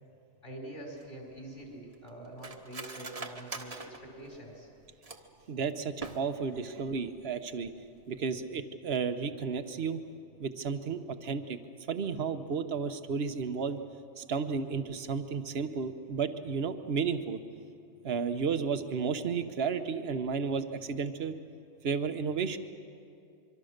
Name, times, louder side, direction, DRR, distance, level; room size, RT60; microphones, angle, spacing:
voice 1, 0.4-4.7, right 1 dB, 50° left, 0 dB, 5.4 m, -45 dB
Cutlery silverware, 1.0-5.4 5.9-6.6 6.9-7.0 7.3-7.7 8.0-8.2, right 3 dB, 35° right, 1.3 m, -44 dB
voice 2, 5.5-7.7 8.1-10.0 10.4-11.6 11.9-13.8 14.2-17.4 18.0-21.4 21.8-22.6, right 5 dB, 60° right, 9 dB, 1.2 m, -32 dB
25.0 x 24.0 x 6.6 m, 2.6 s
omnidirectional pair, 1.2 m